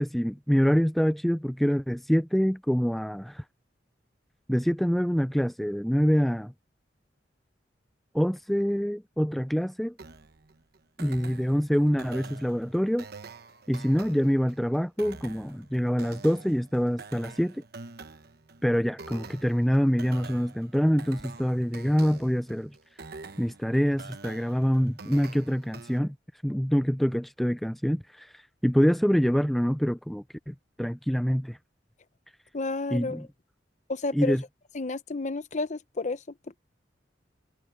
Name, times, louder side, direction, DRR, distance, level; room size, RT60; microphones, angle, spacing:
voice 1, 0.0-3.4 4.5-6.5 8.1-9.9 11.0-13.1 13.7-17.6 18.6-22.8 23.4-26.2 26.4-31.6 32.9-33.3 34.1-34.4, equal, ahead, 0.3 m, -25 dB
sound 1, 10.0-26.0, right 4 dB, 60° right, 1.1 m, -46 dB
voice 2, 32.5-33.3 33.9-34.4 34.7-36.2, left 3 dB, 40° left, 0.9 m, -31 dB
head